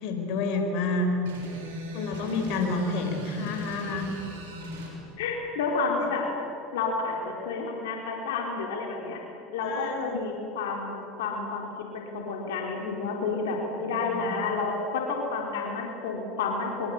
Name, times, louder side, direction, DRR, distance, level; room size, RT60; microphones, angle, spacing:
voice 1, 0.0-1.1 1.9-4.0 9.6-10.2 14.1-14.3, left 3 dB, 65° left, 4 dB, 4.5 m, -29 dB
sound 1, 1.3-4.9, equal, 90° right, 6.7 m, -38 dB
voice 2, 5.2-6.3 6.7-9.2 9.5-11.7 11.9-16.9, left 4 dB, 80° left, 0 dB, 4.2 m, -30 dB
25.0 x 24.5 x 8.5 m, 2.9 s
hypercardioid pair, 95°, 0 cm